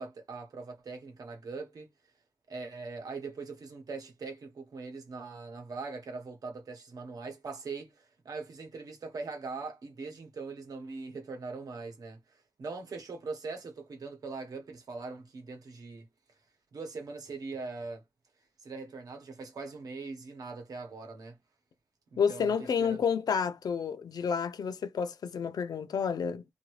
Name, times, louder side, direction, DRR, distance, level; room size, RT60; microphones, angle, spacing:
voice 1, 0.0-1.9 2.5-16.1 16.7-18.0 18.6-21.4 22.1-22.5 22.8-23.0, right 4 dB, 65° right, 1.0 m, -41 dB
voice 2, 22.2-26.4, left 6 dB, 80° left, 0.4 m, -30 dB
2.8 x 2.6 x 3.0 m
wide cardioid pair, 125°, 7 cm